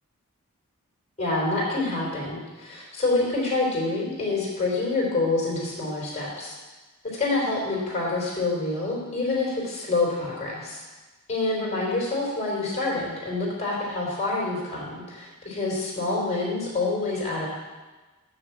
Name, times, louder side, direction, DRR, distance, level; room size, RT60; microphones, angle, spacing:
voice 1, 1.2-6.5 7.2-10.8 11.3-17.5, left 2 dB, 30° left, -4 dB, 3.5 m, -27 dB
7.9 x 6.9 x 7.1 m, 1.2 s
head